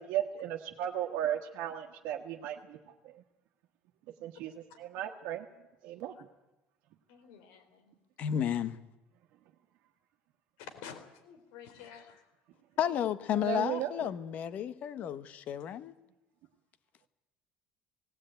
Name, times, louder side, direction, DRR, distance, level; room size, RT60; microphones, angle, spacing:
voice 1, 0.0-2.8 3.0-3.1 4.2-4.5 4.8-5.5 5.8-6.2 13.3-13.9, right 11 dB, 65° right, 1.5 m, -35 dB
voice 2, 7.1-8.0 10.6-12.3 15.6-15.7, left 7 dB, 90° left, 3.6 m, -50 dB
voice 3, 8.2-8.8 12.8-15.9, left 9 dB, 40° left, 1.0 m, -32 dB
18.5 x 18.0 x 9.0 m
cardioid pair, 170°, 4 cm